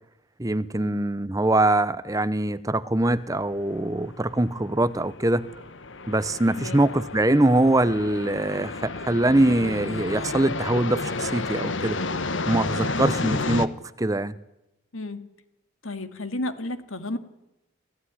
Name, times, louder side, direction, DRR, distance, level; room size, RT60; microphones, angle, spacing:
voice 1, 0.4-5.5 6.1-12.0 12.5-13.7 14.0-14.3, right 1 dB, 15° right, 15 dB, 0.8 m, -23 dB
sound 1, 3.1-13.7, left 3 dB, 65° left, 1.3 m, -31 dB
voice 2, 6.5-6.8 14.9-15.2 15.8-17.2, left 2 dB, 80° left, 10 dB, 2.3 m, -32 dB
27.5 x 16.0 x 9.8 m, 0.90 s
head